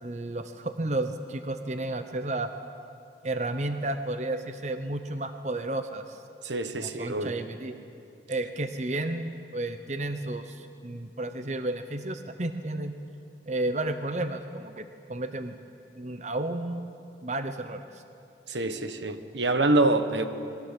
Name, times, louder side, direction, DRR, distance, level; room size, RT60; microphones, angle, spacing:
voice 1, 0.0-2.5 3.2-6.2 6.7-7.8 8.3-12.9 13.5-15.5 16.0-16.9 17.2-18.0, right 2 dB, 40° right, 8 dB, 0.9 m, -32 dB
voice 2, 6.4-7.3 18.5-20.3, right 2 dB, 80° right, 9 dB, 1.4 m, -25 dB
27.0 x 21.5 x 7.6 m, 2.6 s
head